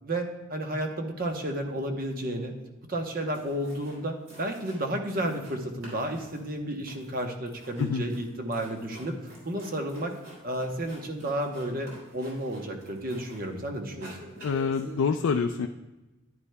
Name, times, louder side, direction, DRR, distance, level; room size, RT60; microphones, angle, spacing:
voice 1, 0.0-2.5 2.9-9.2 9.4-10.1 10.4-14.2, right 1 dB, 45° right, 4 dB, 0.9 m, -32 dB
sound 1, 3.3-4.0 4.3-5.6 5.8-13.5 13.8-15.1, equal, 65° right, 3.2 m, -48 dB
voice 2, 14.4-15.7, left 5 dB, 85° left, 5 dB, 0.4 m, -26 dB
10.5 x 9.6 x 2.2 m, 1.1 s
head